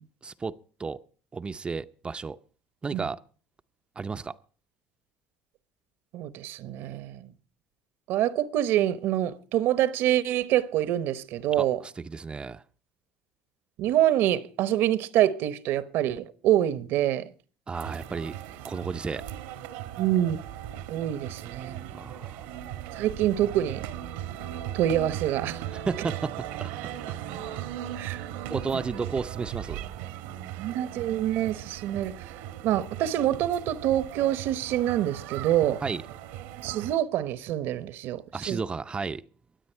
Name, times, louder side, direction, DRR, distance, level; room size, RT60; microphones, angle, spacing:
voice 1, 0.2-1.0 1.3-2.4 2.8-3.2 4.0-4.4 11.5-12.6 17.7-18.4 18.6-19.2 21.9-22.5 25.7-26.3 26.6-26.7 28.5-29.8 35.8-36.0 38.3-39.2, right 4 dB, 25° right, 0.6 m, -33 dB
voice 2, 6.1-7.3 8.1-11.8 13.8-17.3 20.0-20.4 20.9-22.0 23.0-23.8 24.7-25.6 28.0-28.2 30.6-32.1 32.6-35.8 36.6-38.6, right 12 dB, 70° right, 0.9 m, -26 dB
sound 1, 17.7-37.0, right 11 dB, 85° right, 1.3 m, -38 dB
23.5 x 8.4 x 4.5 m
supercardioid pair, 90°, 4 cm